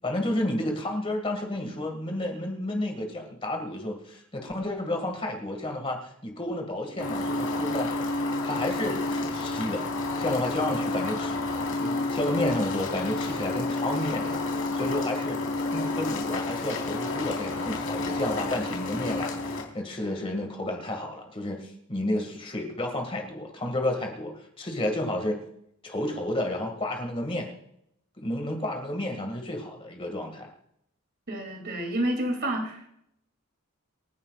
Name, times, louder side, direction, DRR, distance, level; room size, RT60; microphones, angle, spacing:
voice 1, 0.0-8.1 8.4-9.9 10.2-15.4 15.7-25.4 25.8-27.5 28.2-30.5, left 1 dB, 25° left, 3 dB, 2.0 m, -31 dB
sound 1, 7.0-19.6, left 2 dB, 75° left, 4.1 m, -30 dB
voice 2, 31.3-32.9, right 1 dB, 50° right, 4 dB, 2.8 m, -29 dB
27.5 x 10.5 x 2.4 m, 0.73 s
head